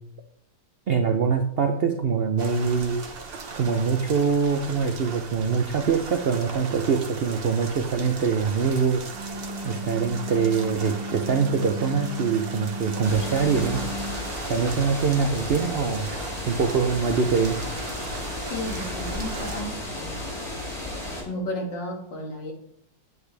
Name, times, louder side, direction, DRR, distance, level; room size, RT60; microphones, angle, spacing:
voice 1, 0.9-3.0 3.5-9.0 9.6-13.8 14.5-16.1 16.5-17.6, right 5 dB, 75° right, 6 dB, 0.5 m, -24 dB
sound 1, 2.4-19.6, right 4 dB, 40° right, 1.0 m, -38 dB
Wind instrument woodwind instrument, 9.0-14.3, left 1 dB, 10° right, 1.3 m, -35 dB
sound 2, 13.0-21.2, left 1 dB, 35° left, 3.5 m, -33 dB
voice 2, 18.5-20.2 21.2-22.5, left 1 dB, 80° left, 1 dB, 2.5 m, -33 dB
9.0 x 8.1 x 3.3 m, 0.72 s
omnidirectional pair, 1.9 m